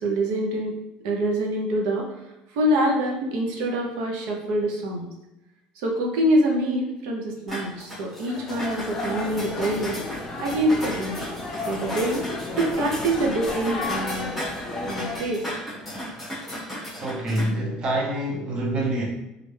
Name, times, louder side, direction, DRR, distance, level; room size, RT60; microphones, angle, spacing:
voice 1, 0.0-0.7 1.0-2.1 2.5-5.1 5.8-10.0 10.4-11.3 11.7-12.2 12.6-14.3 14.8-15.4, right 1 dB, 85° right, 0 dB, 0.7 m, -25 dB
sound 1, 7.5-17.5, equal, ahead, 1.0 m, -36 dB
sound 2, 8.2-15.2, left 2 dB, 15° left, 0.6 m, -33 dB
voice 2, 17.0-19.0, right 1 dB, 30° right, -1 dB, 0.6 m, -26 dB
3.2 x 2.5 x 3.2 m, 0.91 s
cardioid pair, 155°, 3 cm